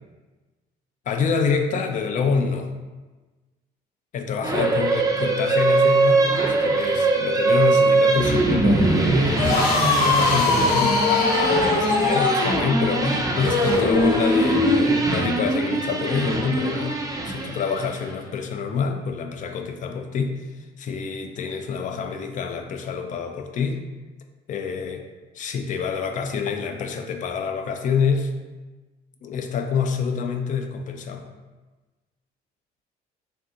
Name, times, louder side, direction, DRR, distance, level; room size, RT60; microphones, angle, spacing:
voice 1, 1.1-2.7 4.1-9.5 9.8-17.0 17.2-20.4 20.8-23.8 24.5-25.0 25.3-28.3 29.2-31.3, left 6 dB, 50° left, 5 dB, 0.4 m, -27 dB
sound 1, 4.4-18.0, right 3 dB, 20° right, 0.5 m, -22 dB
sound 2, 9.1-17.6, equal, 70° right, 1.1 m, -39 dB
sound 3, 9.3-14.9, left 3 dB, 90° left, 0.7 m, -21 dB
3.5 x 2.7 x 3.6 m, 1.2 s
cardioid pair, 110°, 17 cm